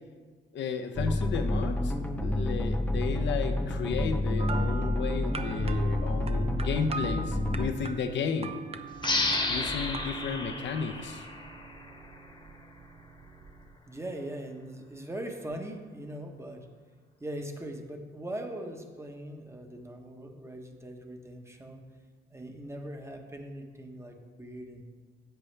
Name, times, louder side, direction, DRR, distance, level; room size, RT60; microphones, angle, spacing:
voice 1, 0.5-8.6 9.5-11.3, left 6 dB, 65° left, 7 dB, 0.8 m, -33 dB
sound 1, 1.0-7.7, left 1 dB, 5° left, 0.9 m, -29 dB
sound 2, 4.4-13.8, right 5 dB, 30° right, 0.6 m, -42 dB
sound 3, 9.0-12.3, left 2 dB, 25° left, 1.2 m, -32 dB
voice 2, 13.9-16.7 17.2-21.8 22.3-24.8, right 1 dB, 15° right, 3 dB, 1.1 m, -40 dB
10.5 x 7.6 x 3.3 m, 1.5 s
cardioid pair, 90°, 20 cm